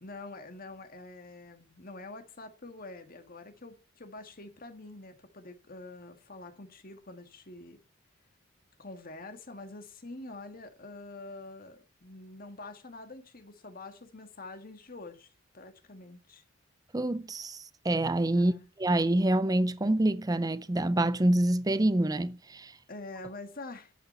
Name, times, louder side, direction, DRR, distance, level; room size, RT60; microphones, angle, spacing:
voice 1, 0.0-7.8 8.8-16.4 18.3-18.7 22.9-23.9, left 2 dB, 45° left, 1.7 m, -46 dB
voice 2, 16.9-17.6 17.8-18.5 18.8-22.7, right 1 dB, 20° right, 0.5 m, -26 dB
10.5 x 8.4 x 4.3 m
head